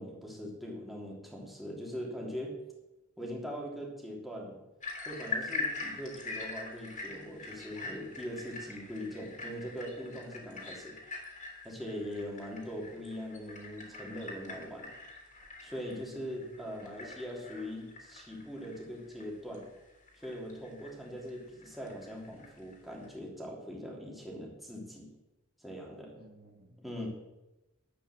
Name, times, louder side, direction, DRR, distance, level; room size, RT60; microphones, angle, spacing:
voice 1, 0.0-2.6 3.2-4.6 5.0-11.0 11.6-14.9 15.6-19.7 20.2-25.1 25.6-26.2 26.8-27.1, equal, ahead, -2 dB, 3.2 m, -41 dB
sound 1, 4.8-23.1, left 3 dB, 40° left, 3.1 m, -43 dB
voice 2, 15.9-17.1 26.1-27.1, right 1 dB, 50° right, 1 dB, 2.0 m, -56 dB
11.5 x 8.9 x 7.5 m, 0.99 s
head